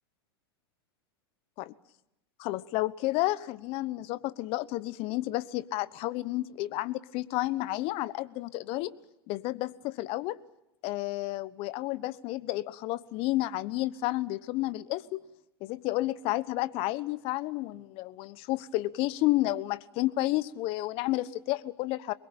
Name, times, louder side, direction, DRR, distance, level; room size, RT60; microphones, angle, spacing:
voice 1, 2.4-8.9 9.3-10.4 10.8-15.2 15.6-22.1, left 17 dB, 45° left, 17 dB, 1.2 m, -31 dB
24.0 x 21.5 x 8.9 m, 0.86 s
hypercardioid pair, 100°, 13 cm